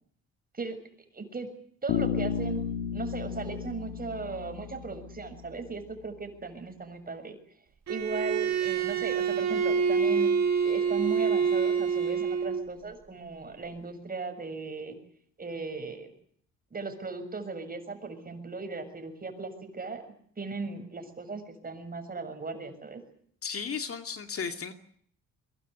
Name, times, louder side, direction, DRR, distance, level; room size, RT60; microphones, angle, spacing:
voice 1, 1.1-1.5 1.8-2.6 2.9-7.4 7.9-10.3 10.6-15.0 15.4-16.1 16.7-20.1 20.4-23.0, right 4 dB, 30° right, 8 dB, 6.9 m, -37 dB
Bass guitar, 1.9-5.8, left 8 dB, 85° left, 2.9 m, -33 dB
Bowed string instrument, 7.9-12.7, right 6 dB, 60° right, 4.4 m, -26 dB
voice 2, 23.4-24.7, left 6 dB, 50° left, 7 dB, 2.5 m, -34 dB
23.5 x 23.0 x 8.2 m, 0.62 s
cardioid pair, 90°, 30 cm